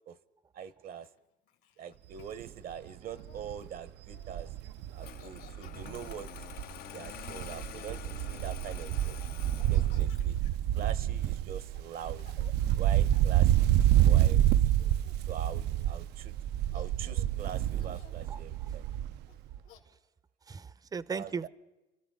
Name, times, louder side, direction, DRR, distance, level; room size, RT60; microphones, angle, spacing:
voice 1, 0.5-1.1 1.8-4.5 4.9-6.3 6.9-9.2 9.7-10.4 10.7-12.2 12.7-13.7 14.0-14.4 15.3-16.3 16.7-18.8 21.1-21.5, right 8 dB, 60° right, 16 dB, 0.8 m, -43 dB
Laughter, 1.0-3.4 4.0-4.4 4.8-6.5 7.3-8.8 9.4-14.3 14.7-15.6 16.3-16.4 16.7-17.3 17.7-18.3 19.3-19.8, left 9 dB, 85° left, 2.4 m, -59 dB
Wind, 2.2-2.5 2.9-3.0 3.2-6.8 7.1-19.2 19.5-19.6, right 12 dB, 80° right, 0.4 m, -28 dB
Engine starting, 5.0-10.4, left 12 dB, 65° left, 0.5 m, -47 dB
voice 2, 18.3-18.8 20.5-21.5, right 5 dB, 20° right, 18 dB, 0.5 m, -38 dB
28.5 x 13.5 x 3.6 m, 1.0 s
cardioid pair, 110°, 17 cm